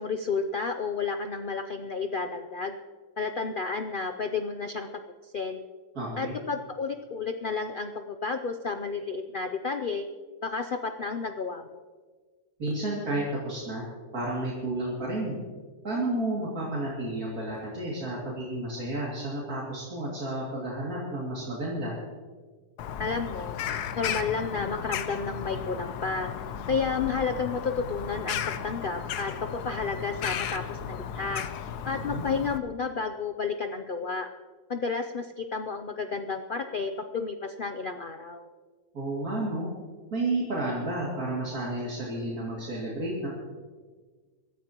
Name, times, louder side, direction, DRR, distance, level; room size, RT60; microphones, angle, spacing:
voice 1, 0.0-2.7 3.2-4.9 5.3-5.6 6.2-10.0 10.4-11.8 23.0-23.6 23.9-26.3 26.7-31.4 31.8-34.3 34.7-38.5, left 4 dB, 55° left, 6 dB, 0.5 m, -31 dB
voice 2, 5.9-6.3 12.6-13.8 14.1-15.4 15.8-21.9 31.9-32.3 38.9-39.7 40.1-43.3, right 1 dB, 65° right, -6 dB, 3.0 m, -31 dB
Bird vocalization bird call bird song, 22.8-32.6, left 9 dB, 85° left, 1.3 m, -35 dB
23.5 x 14.0 x 3.0 m, 1.5 s
omnidirectional pair, 1.6 m